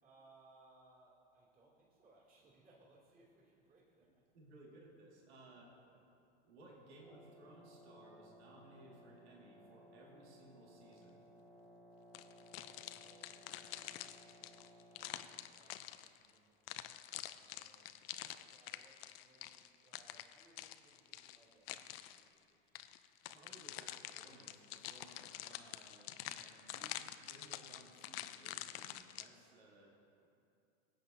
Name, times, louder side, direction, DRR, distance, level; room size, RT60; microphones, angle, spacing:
voice 1, 0.0-4.2 5.8-6.1 12.6-13.7 14.1-15.3 15.5-22.8, right 2 dB, 25° right, -5 dB, 2.8 m, -68 dB
voice 2, 4.0-5.7 6.4-11.3 23.3-29.9, right 2 dB, 75° right, -2 dB, 2.1 m, -60 dB
Wind instrument woodwind instrument, 7.0-15.6, equal, 5° right, 1.2 m, -61 dB
sound 1, 12.1-16.3 16.7-22.3 22.7-29.3, left 14 dB, 60° left, 0.5 m, -47 dB
20.0 x 8.0 x 2.7 m, 2.6 s
hypercardioid pair, 105°, 33 cm